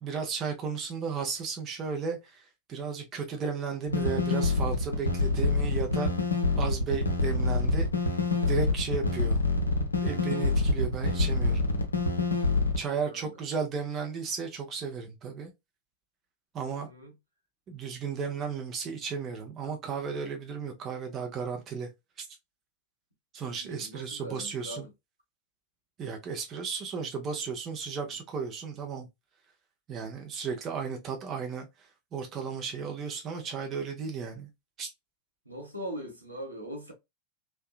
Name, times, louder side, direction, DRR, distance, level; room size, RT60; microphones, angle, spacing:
voice 1, 0.0-6.1 6.6-7.9 8.5-9.4 10.0-11.7 12.8-15.5 16.5-16.9 17.7-21.9 22.2-22.3 23.3-24.9 26.0-29.1 29.9-34.5 34.8-34.9, right 5 dB, 30° right, 0.6 m, -34 dB
sound 1, 3.9-12.8, left 3 dB, 80° left, 0.5 m, -26 dB
voice 2, 16.8-17.1 23.6-24.9 35.5-36.9, equal, 85° right, 0.8 m, -41 dB
2.6 x 2.2 x 2.2 m
figure-of-eight pair, 90°, 0 cm